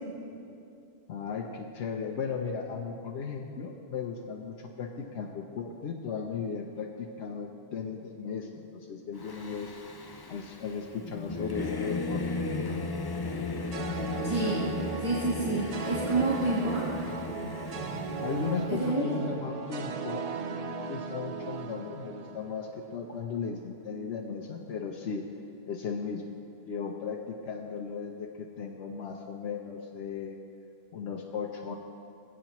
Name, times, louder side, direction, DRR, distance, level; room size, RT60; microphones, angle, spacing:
voice 1, 1.1-9.7 10.3-12.3 18.2-25.2 25.7-26.2 26.7-30.4 30.9-31.8, left 5 dB, 90° left, 1 dB, 1.0 m, -36 dB
Singing / Musical instrument, 9.2-18.7, left 3 dB, 30° left, 0.4 m, -35 dB
sound 1, 13.7-23.0, right 6 dB, 50° right, 0.5 m, -38 dB
voice 2, 14.2-14.7 15.0-16.9 18.7-19.1, right 2 dB, 30° right, -3 dB, 1.2 m, -28 dB
21.5 x 8.5 x 3.0 m, 2.6 s
omnidirectional pair, 1.1 m